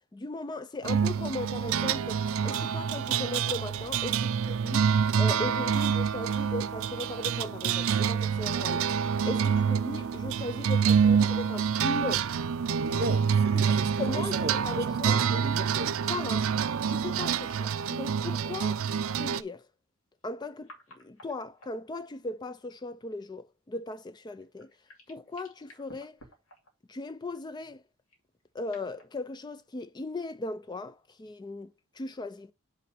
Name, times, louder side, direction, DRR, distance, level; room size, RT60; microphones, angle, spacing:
voice 1, 0.1-4.9 5.2-8.9 9.2-12.3 12.9-13.0 13.5-15.3 16.1-16.5 16.9-18.8 19.2-19.7 20.2-24.7 25.1-26.2 26.9-27.8 28.5-32.5, left 2 dB, 20° left, 0.3 m, -38 dB
sound 1, 0.8-19.4, right 7 dB, 70° right, 0.4 m, -27 dB
voice 2, 12.7-15.9, right 2 dB, 50° right, 0.8 m, -36 dB
sound 2, 17.4-17.9 18.3-18.5 20.2-22.3 24.3-26.9 28.1-29.1, left 1 dB, 75° left, 2.6 m, -55 dB
5.7 x 4.2 x 6.0 m
head